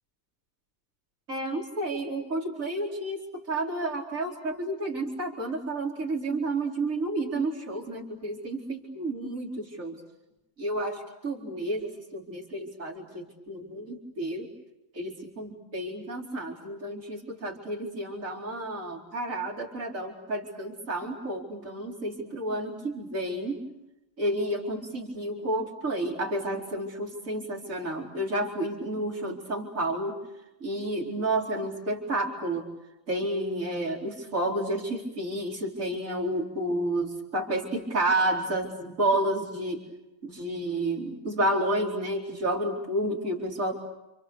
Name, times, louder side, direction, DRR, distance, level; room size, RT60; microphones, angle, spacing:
voice 1, 1.3-3.2 3.5-10.0 10.6-14.5 14.9-23.6 24.2-30.2 30.6-32.6 33.1-39.8 40.2-43.7, right 1 dB, 40° right, -1 dB, 4.8 m, -30 dB
30.0 x 28.0 x 6.9 m, 0.95 s
omnidirectional pair, 2.1 m